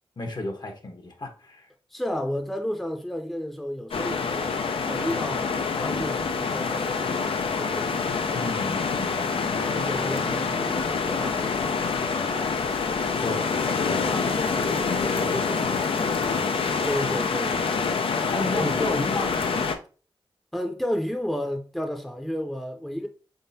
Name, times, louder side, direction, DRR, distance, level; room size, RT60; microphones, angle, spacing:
voice 1, 0.2-1.7 8.3-9.6 13.2-13.4 13.8-16.7 17.0-17.2 18.3-19.3, left 2 dB, 50° left, 1.0 m, -33 dB
voice 2, 1.9-4.5 4.8-5.5 5.8-7.9 9.5-11.6 16.8-17.7 18.1-19.0 20.5-23.1, equal, ahead, 0.6 m, -32 dB
sound 1, 3.9-19.8, left 5 dB, 70° left, 0.5 m, -26 dB
3.7 x 3.7 x 2.7 m
cardioid pair, 50°, 10 cm